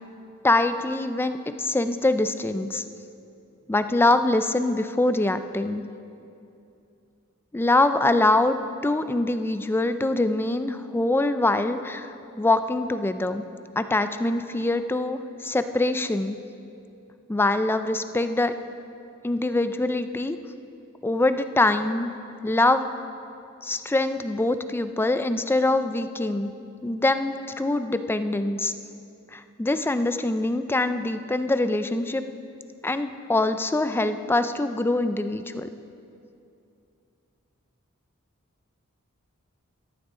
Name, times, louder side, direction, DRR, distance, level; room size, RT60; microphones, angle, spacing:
voice 1, 0.4-2.8 3.7-5.8 7.5-8.6 8.8-13.4 13.8-16.4 17.3-18.5 19.2-20.4 21.0-22.1 22.4-22.9 23.6-26.5 26.8-28.7 29.3-32.2 32.8-35.7, left 2 dB, 10° left, 10 dB, 0.4 m, -24 dB
13.5 x 12.5 x 3.7 m, 2.6 s
head